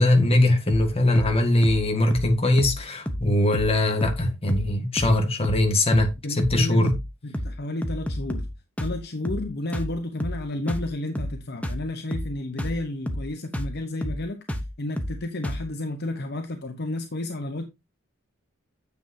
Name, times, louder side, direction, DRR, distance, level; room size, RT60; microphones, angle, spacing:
voice 1, 0.0-6.9, left 1 dB, 25° left, 1.7 m, -21 dB
sound 1, 0.7-0.9 1.2-1.4 1.6-1.8 2.1-2.3 2.6-2.8 3.1-3.3 3.5-3.7 4.0-4.2 4.5-4.7 5.0-5.2 5.4-5.7 5.9-6.1 6.4-6.6 6.9-7.1 7.3-7.6 7.8-8.5 8.8-9.0 9.2-9.5 9.7-9.9 10.2-10.4 10.7-10.9 11.1-11.4 11.6-11.8 12.1-12.3 12.6-12.8 13.1-13.3 13.5-13.7 14.0-14.2 14.5-14.7 15.0-15.2 15.4-15.7, equal, 5° left, 0.9 m, -30 dB
voice 2, 6.2-7.0 7.2-8.5 8.8-17.7, left 2 dB, 50° left, 0.9 m, -32 dB
9.4 x 7.7 x 2.7 m
head